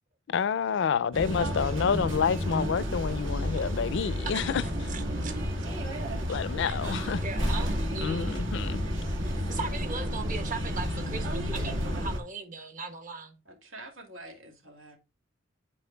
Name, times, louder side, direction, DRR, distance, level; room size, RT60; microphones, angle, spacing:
voice 1, 0.3-4.6 6.3-7.2 8.0-8.8, left 6 dB, 65° left, 0.4 m, -28 dB
sound 1, 1.1-12.2, equal, 70° right, 1.8 m, -31 dB
voice 2, 4.9-5.3 6.7-6.8 7.2-8.5 9.5-13.3, right 4 dB, 45° right, 1.3 m, -38 dB
voice 3, 13.4-15.0, right 2 dB, 90° right, 2.5 m, -47 dB
11.5 x 4.4 x 2.2 m
head